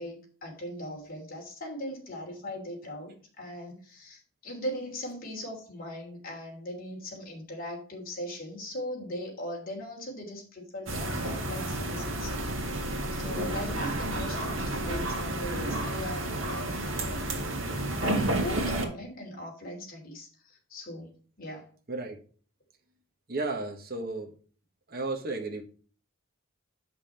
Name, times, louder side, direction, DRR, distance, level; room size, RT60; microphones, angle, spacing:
voice 1, 0.0-12.4 12.7-12.8 13.1-16.7 17.9-21.7, left 1 dB, 45° left, 0 dB, 3.0 m, -39 dB
sound 1, 10.9-18.8, right 1 dB, 70° right, 1.8 m, -31 dB
voice 2, 21.9-22.2 23.3-24.3 24.9-25.6, right 3 dB, 50° right, 3 dB, 1.5 m, -33 dB
7.4 x 5.7 x 4.4 m, 0.40 s
head